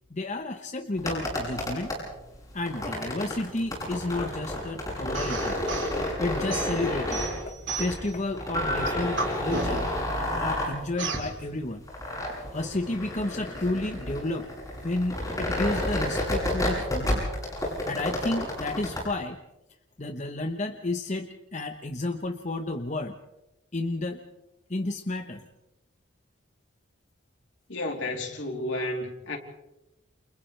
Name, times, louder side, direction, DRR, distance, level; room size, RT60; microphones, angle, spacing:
voice 1, 0.1-1.9 2.5-5.6 6.2-9.9 10.4-11.9 12.5-14.5 14.8-17.2 17.8-19.4 20.0-23.1 23.7-24.2 24.7-25.5, left 2 dB, 35° left, 5 dB, 1.0 m, -31 dB
sound 1, 0.9-19.0, left 1 dB, 20° left, 7.7 m, -31 dB
sound 2, 5.1-5.9 6.5-8.1 8.5-10.0 11.0-11.3, right 3 dB, 65° right, 4.1 m, -32 dB
voice 2, 27.7-29.4, left 1 dB, 75° left, 1 dB, 3.4 m, -32 dB
29.5 x 28.0 x 3.3 m, 0.93 s
head